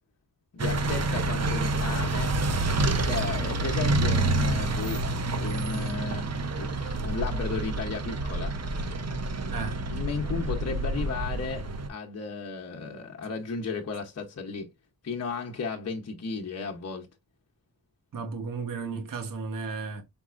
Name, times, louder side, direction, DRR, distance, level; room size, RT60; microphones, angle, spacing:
voice 1, 0.5-2.3 3.0-5.0 5.4-6.3 6.6-8.6 9.9-14.7 15.0-17.1, left 5 dB, 45° left, 0.9 m, -34 dB
sound 1, 0.6-11.9, right 2 dB, 45° right, 0.7 m, -28 dB
voice 2, 9.5-9.8 18.1-20.0, right 4 dB, 60° right, 1.1 m, -34 dB
5.2 x 4.2 x 2.4 m
wide cardioid pair, 115°, 36 cm